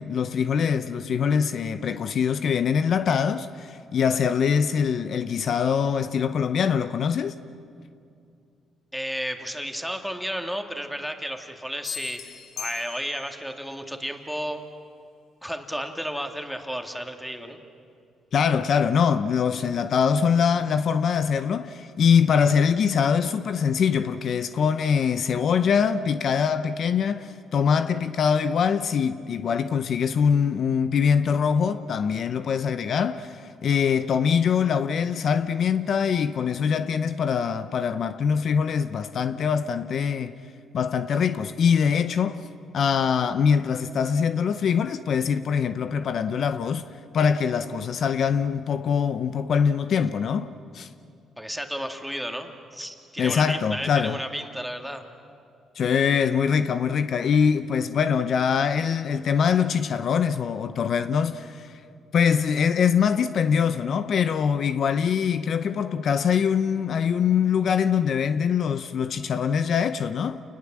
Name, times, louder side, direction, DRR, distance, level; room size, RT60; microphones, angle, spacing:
voice 1, 0.0-7.4 18.3-40.3 40.7-42.5 42.7-46.9 47.1-50.9 53.2-54.2 55.8-61.8 62.1-70.4, left 7 dB, 60° left, 0.8 m, -23 dB
voice 2, 8.9-14.6 15.4-17.6 51.4-55.0, equal, ahead, 2.3 m, -33 dB
sound 1, 11.8-13.5, left 8 dB, 85° left, 1.4 m, -38 dB
29.0 x 20.0 x 7.5 m
cardioid pair, 90°, 0 cm